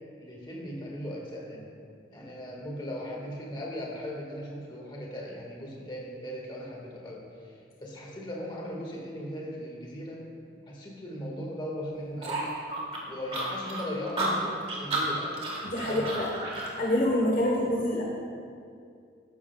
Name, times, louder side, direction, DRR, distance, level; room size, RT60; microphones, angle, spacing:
voice 1, 0.2-1.7 2.1-10.3 10.7-12.5 13.0-15.4 15.8-16.3, equal, 25° left, -3 dB, 1.7 m, -38 dB
sound 1, 12.2-16.7, right 2 dB, 30° right, 1.6 m, -32 dB
voice 2, 15.6-16.3 16.8-18.0, left 1 dB, 50° left, -3 dB, 1.1 m, -26 dB
13.5 x 11.0 x 2.3 m, 2.3 s
head